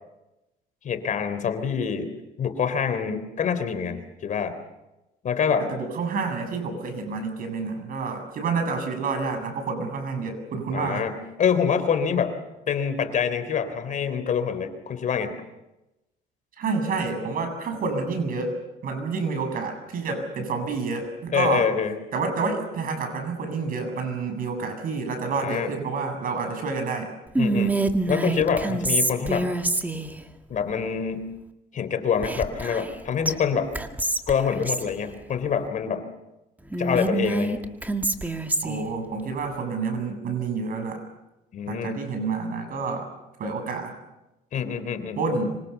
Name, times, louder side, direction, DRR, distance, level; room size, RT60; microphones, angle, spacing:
voice 1, 0.8-2.1 2.4-4.5 5.2-5.7 10.7-12.4 12.7-15.3 21.3-22.0 25.3-25.7 27.4-27.7 28.1-29.5 30.5-31.3 31.7-33.7 34.3-36.1 36.8-37.6 41.5-42.1 44.5-45.2, left 7 dB, 50° left, 10 dB, 3.5 m, -26 dB
voice 2, 5.6-11.1 16.6-18.5 18.8-21.7 22.1-27.1 38.6-41.1 41.7-43.1 43.4-43.9 45.2-45.6, right 4 dB, 55° right, 6 dB, 7.8 m, -28 dB
Whispering, 27.4-30.2 32.2-33.0 33.3-33.4 33.7-34.9 36.7-38.9, right 2 dB, 10° right, 2.1 m, -25 dB
26.0 x 25.0 x 7.2 m, 0.97 s
cardioid pair, 110°, 17 cm